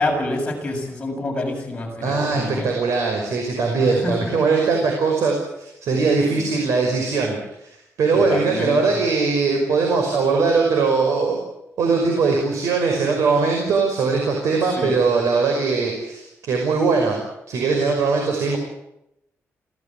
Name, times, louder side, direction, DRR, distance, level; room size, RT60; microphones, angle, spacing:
voice 1, 0.0-2.7 3.8-4.4 6.2-6.6 8.1-8.7 14.7-15.0, left 2 dB, 20° left, 0 dB, 7.0 m, -27 dB
voice 2, 2.0-7.7 8.0-11.4 11.8-17.2 17.5-18.6, right 4 dB, 90° right, 2 dB, 5.6 m, -20 dB
26.5 x 17.5 x 8.6 m, 0.88 s
wide cardioid pair, 155°, 5 cm